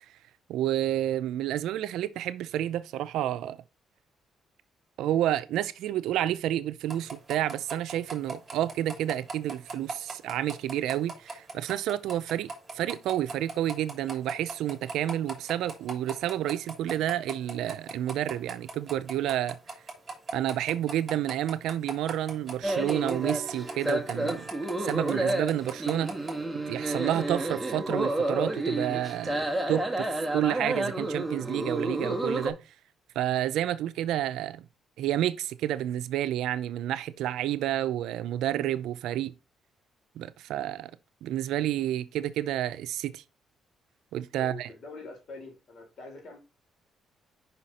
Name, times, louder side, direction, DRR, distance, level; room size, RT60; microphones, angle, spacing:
voice 1, 0.5-3.6 5.0-12.5 12.7-19.6 20.3-24.5 24.8-26.2 26.7-32.6 33.2-34.6 35.0-39.3 40.2-40.9 41.2-43.2 44.1-44.7, right 12 dB, 85° right, 0.5 m, -30 dB
sound 1, 6.9-26.4, right 3 dB, 25° right, 2.9 m, -38 dB
sound 2, 22.6-32.5, right 2 dB, 5° right, 1.4 m, -30 dB
voice 2, 44.4-46.4, left 3 dB, 55° left, 4.1 m, -44 dB
5.8 x 5.6 x 4.2 m
cardioid pair, 90°, 0 cm